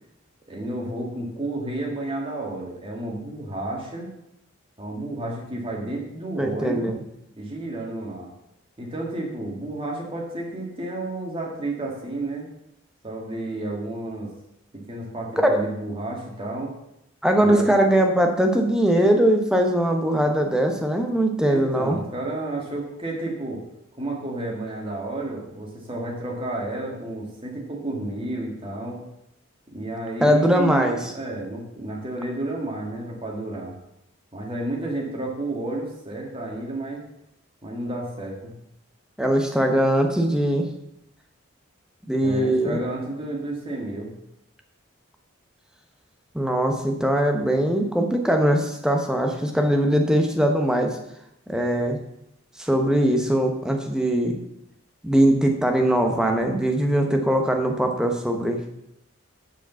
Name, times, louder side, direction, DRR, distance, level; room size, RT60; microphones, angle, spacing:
voice 1, 0.5-4.1 4.8-6.9 7.4-8.3 8.8-12.5 13.0-14.3 14.9-16.7 17.4-17.7 21.5-23.6 24.0-29.0 29.7-33.7 34.3-37.0 37.6-38.5 42.2-44.1, right 2 dB, 25° right, -1 dB, 1.9 m, -31 dB
voice 2, 6.4-7.0 15.4-15.6 17.2-22.0 30.2-31.0 39.2-40.7 42.1-42.8 46.3-51.0 51.5-52.0 52.6-54.4 55.0-58.6, right 1 dB, 5° right, 3 dB, 0.9 m, -21 dB
6.6 x 5.1 x 6.9 m, 0.82 s
head